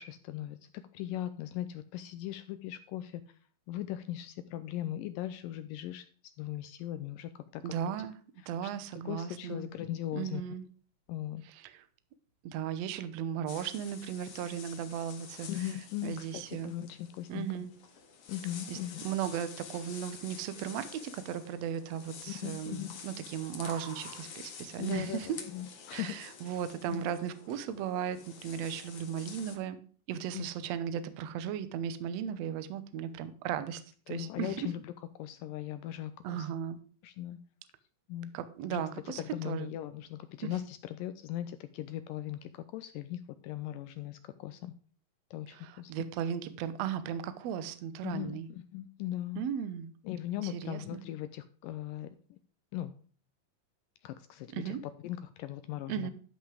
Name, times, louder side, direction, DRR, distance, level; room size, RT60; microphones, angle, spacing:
voice 1, 0.0-3.4 3.7-6.1 6.4-7.7 8.6-8.7 9.1-10.4 11.1-11.4 15.5-17.5 18.3-19.1 22.3-23.0 24.8-26.2 26.9-27.0 30.3-30.4 34.1-34.9 35.2-36.5 37.0-37.4 38.1-38.3 38.7-44.7 45.3-46.1 48.0-49.4 50.0-52.4 52.7-52.9 54.0-54.8 55.0-56.1, left 13 dB, 80° left, 11 dB, 2.1 m, -39 dB
voice 2, 7.6-8.1 8.5-9.6 10.1-10.6 11.6-11.8 12.4-15.5 16.0-16.7 17.3-17.7 18.7-18.8 19.0-25.3 25.9-29.8 30.1-33.8 34.1-34.7 36.2-36.8 38.3-39.7 40.4-40.5 45.5-48.5 49.4-49.9 50.4-51.0 54.5-54.8 55.9-56.1, right 9 dB, 80° right, 13 dB, 1.5 m, -36 dB
sound 1, 10.6-25.4, right 4 dB, 45° right, 3.1 m, -60 dB
sound 2, 13.5-29.6, left 6 dB, 50° left, 1.9 m, -49 dB
12.0 x 5.7 x 4.9 m, 0.43 s
omnidirectional pair, 4.3 m